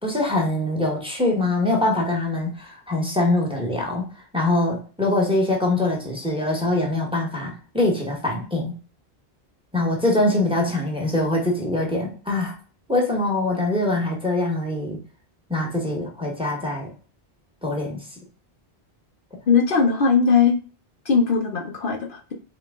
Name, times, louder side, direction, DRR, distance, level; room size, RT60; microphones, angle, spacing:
voice 1, 0.0-4.1 4.3-8.8 9.7-12.5 12.9-15.0 15.5-16.9 17.6-18.1, left 2 dB, 5° right, 0 dB, 1.1 m, -23 dB
voice 2, 19.5-20.6 21.0-22.3, left 5 dB, 60° left, 1 dB, 0.9 m, -19 dB
3.8 x 3.1 x 3.6 m, 0.38 s
omnidirectional pair, 1.1 m